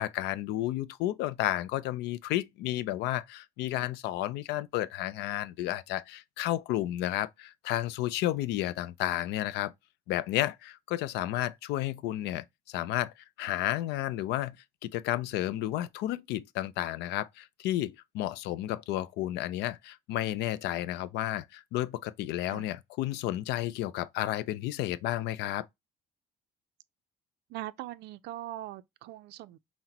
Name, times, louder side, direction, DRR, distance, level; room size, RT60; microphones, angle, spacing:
voice 1, 0.0-9.7 10.1-14.6 14.8-25.7, left 14 dB, 85° left, 0.4 m, -32 dB
voice 2, 27.5-29.6, right 14 dB, 80° right, 0.4 m, -41 dB
5.7 x 2.1 x 2.8 m
cardioid pair, 110°, 17 cm